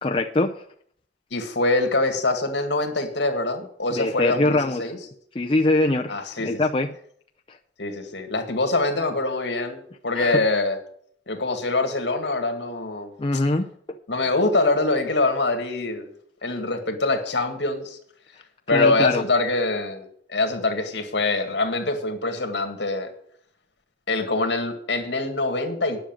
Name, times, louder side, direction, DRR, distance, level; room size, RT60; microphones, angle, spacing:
voice 1, 0.0-0.5 4.0-4.9 5.3-6.2 6.4-7.0 10.2-10.4 13.2-13.7 18.7-19.2, left 2 dB, 30° left, 3 dB, 0.6 m, -22 dB
voice 2, 1.3-5.0 6.1-6.6 7.8-10.8 11.3-13.4 14.1-16.1 16.4-18.0 18.7-23.1 24.1-26.0, left 2 dB, 75° left, 6 dB, 2.0 m, -24 dB
10.0 x 6.5 x 8.9 m, 0.63 s
head